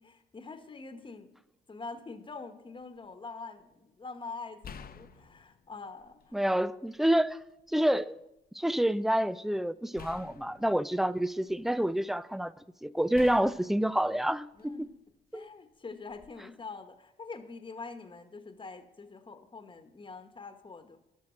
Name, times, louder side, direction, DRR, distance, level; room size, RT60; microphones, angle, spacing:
voice 1, 0.0-1.4 1.7-6.4 14.6-14.9 15.3-21.0, left 4 dB, 25° left, 1.2 m, -45 dB
sound 1, 2.8-3.1 4.6-6.5 6.9-7.9 10.0-11.9 13.1-15.0 16.1-16.3, left 6 dB, 50° left, 0.9 m, -51 dB
voice 2, 6.3-7.4 7.7-8.3 8.5-12.5 12.8-14.8 15.3-15.5, right 1 dB, ahead, 0.4 m, -28 dB
11.5 x 6.2 x 7.2 m
cardioid pair, 90°, 20 cm